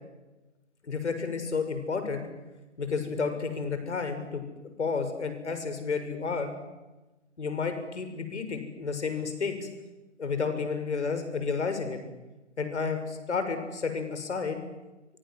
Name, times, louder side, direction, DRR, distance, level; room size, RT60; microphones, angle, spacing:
voice 1, 0.8-2.3 2.8-6.5 7.4-9.7 10.2-12.0 12.6-14.6, left 5 dB, 65° left, 8 dB, 7.1 m, -31 dB
29.5 x 24.5 x 7.8 m, 1.1 s
figure-of-eight pair, 135°, 37 cm